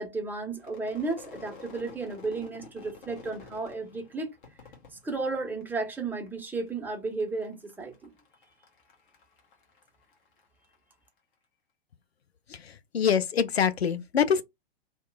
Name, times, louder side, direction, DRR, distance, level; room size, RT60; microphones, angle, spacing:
voice 1, 0.0-4.3 4.9-8.1, right 3 dB, 5° right, 0.6 m, -33 dB
Crowd / Fireworks, 0.6-6.0 6.3-6.9 7.2-10.7, left 3 dB, 55° left, 1.2 m, -50 dB
voice 2, 12.5-14.4, left 7 dB, 85° left, 0.5 m, -25 dB
2.9 x 2.1 x 3.2 m
figure-of-eight pair, 105°, 30 cm